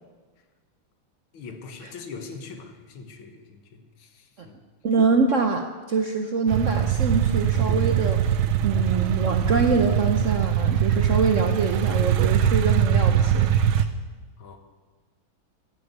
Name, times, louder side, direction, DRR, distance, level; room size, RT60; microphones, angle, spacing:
voice 1, 1.3-4.6 14.4-14.6, left 4 dB, 80° left, 6 dB, 2.2 m, -42 dB
voice 2, 4.8-5.6 5.9-8.4 8.6-13.9, right 4 dB, 60° right, 5 dB, 0.8 m, -24 dB
sound 1, 6.5-13.8, right 9 dB, 85° right, 1.5 m, -22 dB
14.0 x 8.3 x 8.2 m, 1.3 s
omnidirectional pair, 2.2 m